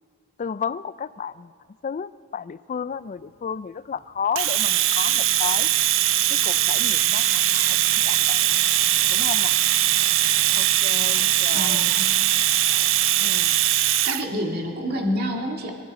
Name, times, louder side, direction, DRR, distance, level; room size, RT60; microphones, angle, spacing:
voice 1, 0.4-1.5 1.8-5.7 6.3-8.4 9.1-9.6 10.6-11.9 12.7-13.6, left 7 dB, 35° left, 17 dB, 0.3 m, -33 dB
Domestic sounds home sounds, 4.4-14.2, right 13 dB, 60° right, 0.5 m, -21 dB
voice 2, 11.5-12.1 14.0-15.7, equal, 45° right, 1 dB, 2.1 m, -28 dB
23.5 x 13.0 x 4.2 m, 2.2 s
head